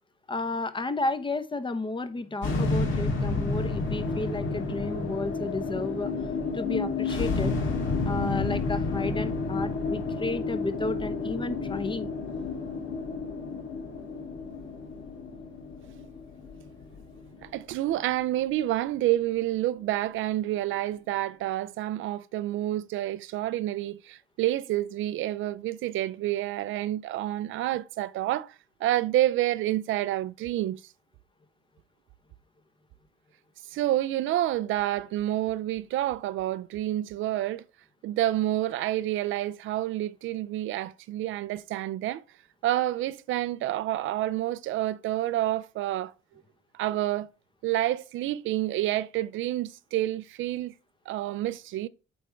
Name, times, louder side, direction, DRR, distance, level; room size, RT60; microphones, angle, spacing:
voice 1, 0.3-6.1 6.5-7.5 8.1-12.2, left 2 dB, 25° left, 0.9 m, -32 dB
sound 1, 2.4-18.8, left 3 dB, 80° left, 2.0 m, -30 dB
voice 2, 17.4-28.5 28.8-30.8 33.7-37.6 38.0-42.2 42.6-46.1 46.7-47.3 47.6-50.7 51.1-51.9, right 14 dB, 80° right, 0.5 m, -28 dB
8.5 x 3.5 x 4.4 m
cardioid pair, 90°, 20 cm